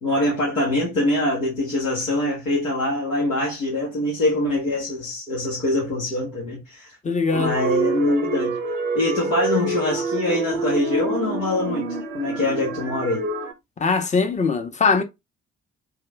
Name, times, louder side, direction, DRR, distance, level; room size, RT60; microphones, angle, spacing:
voice 1, 0.0-6.9 7.3-8.6 8.9-13.3, left 1 dB, 85° left, 1.3 m, -24 dB
voice 2, 7.0-7.5 13.8-15.0, left 4 dB, 20° left, 0.8 m, -21 dB
sound 1, 7.3-13.5, right 2 dB, 80° right, 0.5 m, -27 dB
3.4 x 2.8 x 3.3 m
figure-of-eight pair, 45°, 38 cm